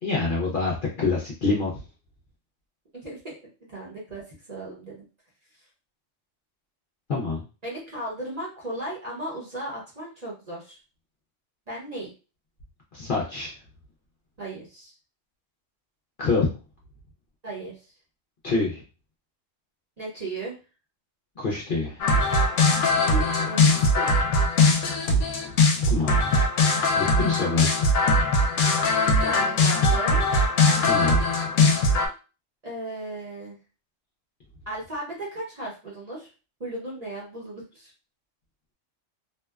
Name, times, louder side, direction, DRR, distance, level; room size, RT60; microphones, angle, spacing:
voice 1, 0.0-1.8 7.1-7.4 12.9-13.5 16.2-16.5 18.4-18.8 21.4-22.0 25.9-26.3 26.9-27.7 30.8-31.2, left 3 dB, 55° left, -3 dB, 0.6 m, -26 dB
voice 2, 2.9-3.4 3.7-5.1 7.6-10.8 11.7-12.1 14.4-14.9 17.4-17.8 20.0-20.6 22.9-24.1 24.8-25.1 29.2-30.3 32.6-33.6 34.7-36.3 36.6-37.9, right 1 dB, 40° right, -5 dB, 0.7 m, -36 dB
sound 1, 22.0-32.1, left 2 dB, 75° left, 0.9 m, -21 dB
2.7 x 2.1 x 2.3 m, 0.33 s
omnidirectional pair, 1.3 m